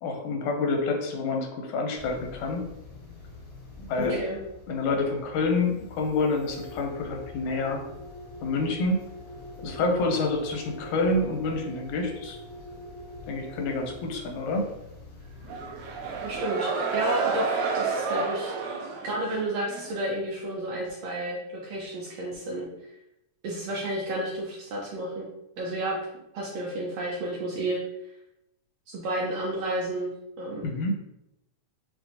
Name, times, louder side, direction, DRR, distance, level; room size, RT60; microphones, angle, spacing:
voice 1, 0.0-2.6 3.8-4.2 4.7-7.8 8.4-9.0 9.6-12.4 13.3-14.7 30.6-31.0, left 3 dB, 85° left, 3 dB, 2.0 m, -28 dB
sound 1, 2.0-16.4, left 2 dB, 60° left, 0.8 m, -43 dB
voice 2, 4.0-4.4 16.2-18.5 19.0-22.7 23.4-25.3 25.6-26.0 26.3-27.8 28.9-30.1 30.4-30.7, right 1 dB, 75° right, -3 dB, 1.5 m, -31 dB
sound 2, 15.4-19.9, right 5 dB, 90° right, 2.0 m, -30 dB
5.9 x 2.2 x 2.7 m, 0.85 s
omnidirectional pair, 3.4 m